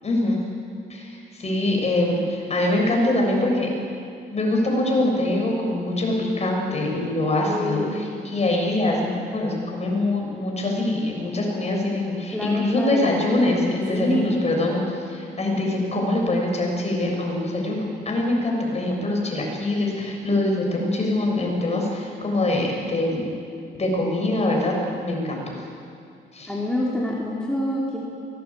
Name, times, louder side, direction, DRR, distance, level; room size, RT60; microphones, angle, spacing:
voice 1, 0.0-0.4 0.9-3.7 4.3-14.8 15.1-23.3 23.7-25.5 26.3-26.5, left 1 dB, 35° left, 0 dB, 7.2 m, -24 dB
voice 2, 7.5-7.9 12.3-13.2 13.9-14.3 26.5-28.0, left 1 dB, 5° left, -5 dB, 4.3 m, -26 dB
23.5 x 19.0 x 8.8 m, 2.5 s
cardioid pair, 90°, 20 cm